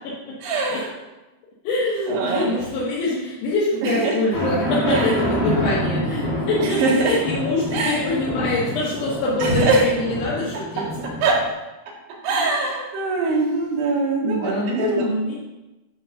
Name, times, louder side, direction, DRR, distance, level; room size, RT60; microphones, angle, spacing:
voice 1, 0.4-0.9 2.1-2.5 3.8-4.1 4.9-5.1 6.8-7.1 7.7-8.1 9.4-9.8 11.2-11.4 12.2-15.0, right 3 dB, 80° right, -3 dB, 4.0 m, -22 dB
voice 2, 1.7-10.8 13.2-13.5 14.2-15.4, left 2 dB, 80° left, -7 dB, 3.7 m, -24 dB
sound 1, 4.3-11.5, equal, 65° left, 3.8 m, -27 dB
11.0 x 3.9 x 6.4 m, 1.0 s
omnidirectional pair, 4.7 m